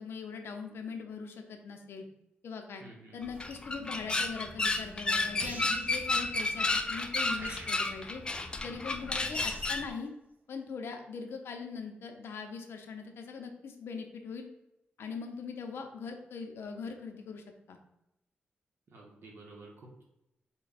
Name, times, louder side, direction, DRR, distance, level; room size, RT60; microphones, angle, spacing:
voice 1, 0.0-2.1 2.4-2.8 3.1-8.2 8.6-10.1 10.5-14.5 15.0-17.8, left 5 dB, 75° left, 4 dB, 0.5 m, -41 dB
voice 2, 2.8-3.2 18.9-20.0, right 2 dB, 65° right, -2 dB, 1.0 m, -51 dB
sound 1, 3.2-9.9, left 2 dB, 20° left, 0.4 m, -32 dB
sound 2, 5.4-6.0 7.3-8.0 9.3-9.8, right 2 dB, 40° right, 0.7 m, -45 dB
4.2 x 2.2 x 3.9 m, 0.87 s
cardioid pair, 100°, 4 cm